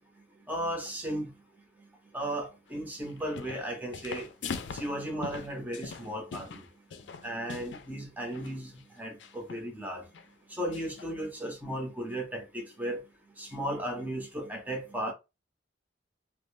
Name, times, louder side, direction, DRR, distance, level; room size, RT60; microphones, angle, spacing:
voice 1, 0.5-1.3 2.1-4.3 4.7-6.6 7.2-8.7 9.0-10.0 10.5-13.0 13.4-15.1, right 1 dB, 10° right, 0.7 m, -35 dB
sound 1, 3.1-3.7 3.9-7.9 8.3-8.5 9.2-9.7 10.1-10.3 10.7-11.1, left 5 dB, 85° left, 0.4 m, -41 dB
2.6 x 2.0 x 3.0 m
head